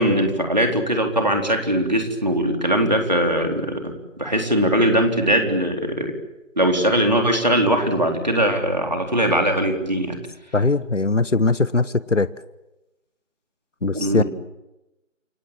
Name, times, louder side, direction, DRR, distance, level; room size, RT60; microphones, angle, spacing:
voice 1, 0.0-6.1 6.6-10.2 13.9-14.2, right 1 dB, 35° right, 4 dB, 4.1 m, -20 dB
voice 2, 10.5-12.3 13.8-14.2, left 3 dB, 65° left, 16 dB, 1.2 m, -20 dB
28.5 x 23.5 x 8.8 m, 0.97 s
figure-of-eight pair, 180°, 39 cm